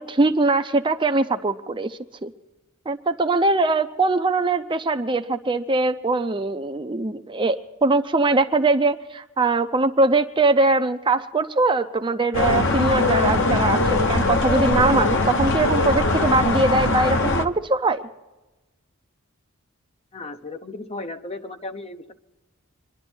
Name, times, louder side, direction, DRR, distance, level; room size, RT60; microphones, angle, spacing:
voice 1, 0.0-2.3 2.9-18.0, right 3 dB, 25° right, 8 dB, 0.6 m, -21 dB
sound 1, 12.3-17.5, left 3 dB, 60° left, 1.0 m, -21 dB
voice 2, 20.1-22.1, left 2 dB, 30° left, 7 dB, 0.9 m, -35 dB
25.5 x 11.0 x 4.5 m, 1.1 s
head